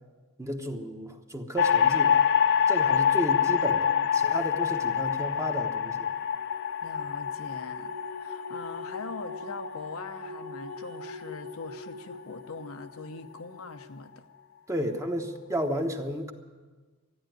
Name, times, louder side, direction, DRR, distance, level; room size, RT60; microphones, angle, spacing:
voice 1, 0.4-2.2 2.7-6.1 14.7-16.3, right 1 dB, 15° right, 4 dB, 1.1 m, -32 dB
sound 1, 1.6-11.9, left 8 dB, 55° left, 0.4 m, -26 dB
voice 2, 3.6-4.1 6.8-7.9 8.2-14.2 14.8-14.9, left 3 dB, 80° left, 7 dB, 0.9 m, -42 dB
sound 2, 6.1-13.9, left 1 dB, 70° right, 1.4 m, -44 dB
14.0 x 10.0 x 9.2 m, 1.3 s
head